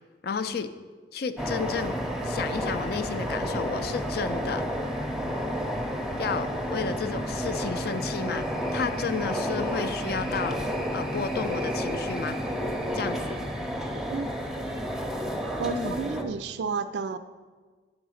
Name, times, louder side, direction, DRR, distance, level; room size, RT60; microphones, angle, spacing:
voice 1, 0.2-0.7 1.1-2.0 2.2-4.6 6.2-8.4 8.7-10.6 10.9-12.4 12.9-13.4 15.7-16.0, left 5 dB, 60° left, 11 dB, 0.4 m, -32 dB
sound 1, 1.4-16.2, equal, 5° right, 0.6 m, -31 dB
voice 2, 15.6-17.2, right 5 dB, 70° right, 10 dB, 0.3 m, -31 dB
9.1 x 3.9 x 6.3 m, 1.4 s
head